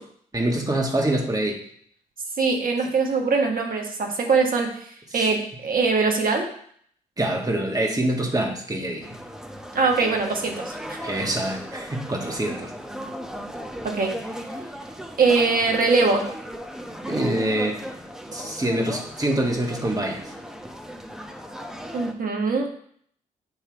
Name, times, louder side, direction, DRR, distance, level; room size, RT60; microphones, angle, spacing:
voice 1, 0.3-1.6 5.1-5.2 7.2-9.1 11.0-12.7 17.0-17.8 18.3-20.3, right 1 dB, 20° right, 1 dB, 1.6 m, -25 dB
voice 2, 2.4-4.7 5.1-6.5 9.7-11.0 13.8-14.1 15.2-16.2 21.9-22.7, right 4 dB, 50° right, 2 dB, 1.4 m, -22 dB
sound 1, 9.0-22.1, equal, 5° right, 0.9 m, -36 dB
8.1 x 3.2 x 4.7 m, 0.63 s
hypercardioid pair, 40°, 19 cm